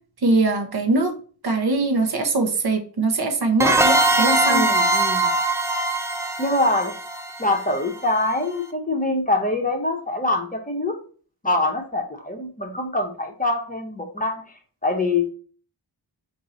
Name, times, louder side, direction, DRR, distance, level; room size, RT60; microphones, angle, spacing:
voice 1, 0.2-1.1 1.4-4.7, right 3 dB, 60° right, 5 dB, 0.9 m, -22 dB
sound 1, 3.6-8.1, right 2 dB, 5° right, 0.4 m, -21 dB
voice 2, 4.4-5.3 6.4-6.9 7.4-11.0 11.4-14.4 14.8-15.3, left 2 dB, 20° left, 3 dB, 0.8 m, -24 dB
4.5 x 2.7 x 3.9 m, 0.41 s
wide cardioid pair, 105°, 43 cm